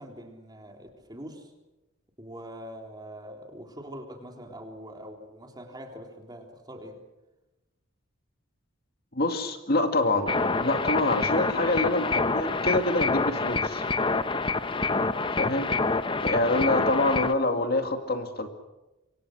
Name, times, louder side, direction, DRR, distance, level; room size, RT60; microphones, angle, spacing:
voice 1, 0.0-1.5 2.2-7.0 15.7-16.1, equal, 20° right, 2 dB, 3.5 m, -43 dB
voice 2, 9.1-10.3 10.6-13.9 15.3-15.7 16.2-18.5, left 2 dB, 50° left, 5 dB, 2.2 m, -26 dB
sound 1, 10.3-17.3, left 3 dB, 25° left, 0.9 m, -27 dB
26.5 x 24.5 x 6.5 m, 1.0 s
head